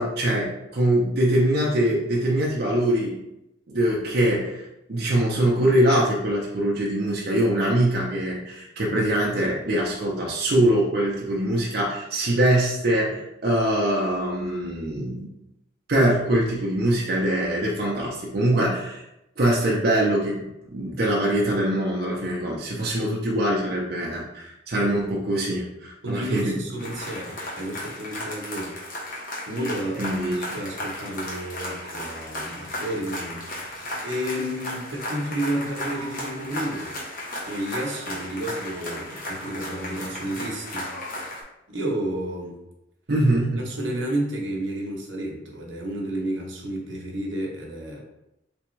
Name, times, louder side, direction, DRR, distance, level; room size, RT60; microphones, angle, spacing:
voice 1, 0.0-3.2 3.7-4.6 4.9-15.3 15.9-19.0 19.4-26.6 30.0-30.5 43.1-43.9, right 1 dB, 55° right, -4 dB, 0.6 m, -23 dB
voice 2, 26.0-28.7 29.5-33.8 34.0-37.0 37.5-40.9 41.7-42.6 43.6-48.0, right 1 dB, 85° right, -1 dB, 0.9 m, -31 dB
sound 1, 26.8-41.4, left 1 dB, 50° left, 1.0 m, -35 dB
3.5 x 3.4 x 3.1 m, 0.88 s
head